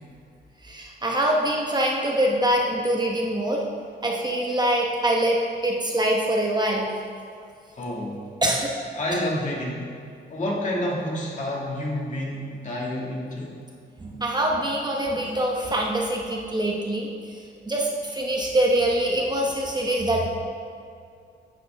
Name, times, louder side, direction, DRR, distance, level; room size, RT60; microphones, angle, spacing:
voice 1, 0.6-3.6 4.0-6.9 8.4-8.7 14.0-17.4 17.7-20.3, right 1 dB, 20° right, -1 dB, 0.9 m, -24 dB
voice 2, 7.7-8.3 8.9-9.8 10.3-13.5, left 1 dB, 40° left, -3 dB, 1.9 m, -29 dB
9.5 x 8.2 x 3.4 m, 2.3 s
wide cardioid pair, 135°, 19 cm